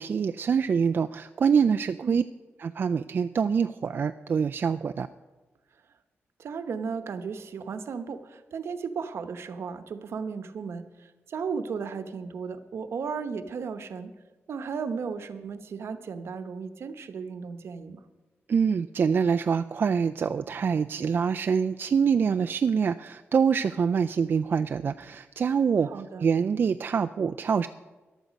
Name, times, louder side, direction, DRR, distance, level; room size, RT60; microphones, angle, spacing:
voice 1, 0.0-2.2 2.6-5.1 18.5-27.7, right 6 dB, 50° right, 8 dB, 0.3 m, -25 dB
voice 2, 6.4-14.1 14.5-18.0 25.8-26.2, right 5 dB, 70° right, 10 dB, 0.9 m, -35 dB
14.5 x 11.0 x 5.2 m, 1.2 s
wide cardioid pair, 140°, 5 cm